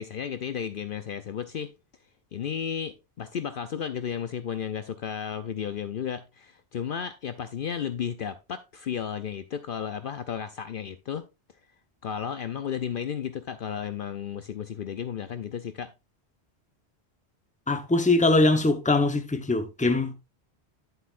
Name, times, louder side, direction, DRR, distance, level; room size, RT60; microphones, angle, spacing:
voice 1, 0.0-1.7 2.3-11.2 12.0-15.9, left 8 dB, 60° left, 0.7 m, -33 dB
voice 2, 17.7-20.1, left 2 dB, 10° left, 0.8 m, -22 dB
10.5 x 7.9 x 2.4 m
omnidirectional pair, 1.1 m